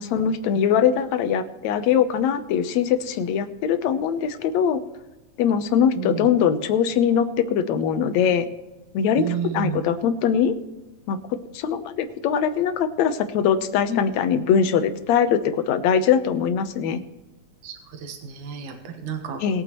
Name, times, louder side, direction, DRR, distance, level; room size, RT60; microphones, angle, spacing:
voice 1, 0.0-4.8 5.4-8.5 8.9-10.5 11.1-11.2 11.5-17.0 19.4-19.6, left 8 dB, 75° left, 10 dB, 2.1 m, -22 dB
voice 2, 6.0-6.3 9.2-9.8 13.9-14.1 17.6-19.6, right 5 dB, 85° right, 4 dB, 2.9 m, -31 dB
20.5 x 9.0 x 3.0 m, 1.1 s
omnidirectional pair, 3.4 m